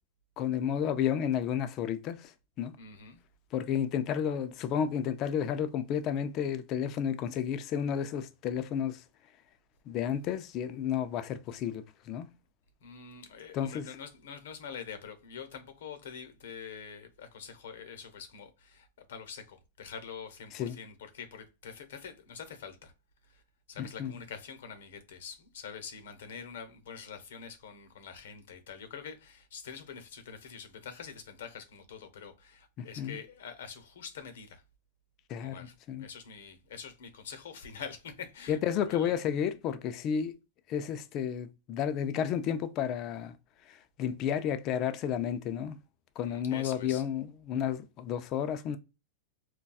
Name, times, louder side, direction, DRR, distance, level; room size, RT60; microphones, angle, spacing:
voice 1, 0.4-2.3 2.6-2.7 3.5-9.0 9.9-12.3 13.5-13.9 20.5-20.8 23.8-24.1 32.8-33.2 35.3-36.0 38.5-40.3 40.7-43.4 43.7-45.8 46.2-48.8, left 9 dB, 35° left, 0.3 m, -32 dB
voice 2, 2.8-3.2 12.8-22.9 23.3-23.4 23.7-34.6 35.4-38.6 38.9-39.1 46.2-47.0, left 6 dB, 80° left, 0.8 m, -45 dB
4.0 x 2.2 x 2.3 m
supercardioid pair, 140°, 0 cm